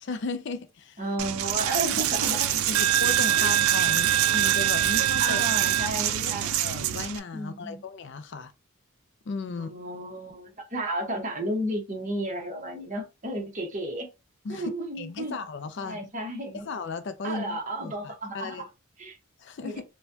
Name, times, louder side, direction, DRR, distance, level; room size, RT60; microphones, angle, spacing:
voice 1, 0.0-1.0 2.2-5.4 6.3-8.5 9.3-9.7 14.4-14.7 15.0-16.0 16.5-18.7 19.4-19.8, left 4 dB, 55° left, 0.4 m, -36 dB
voice 2, 1.0-2.5 3.4-3.5 3.9-4.2 5.2-6.5 7.3-7.8 9.5-14.1 14.5-15.4 15.8-16.6 17.2-18.6 19.0-19.2 19.6-19.7, right 1 dB, 35° right, 1.0 m, -33 dB
Coin (dropping), 1.2-7.2, right 12 dB, 75° right, 0.4 m, -24 dB
4.3 x 2.2 x 2.6 m
head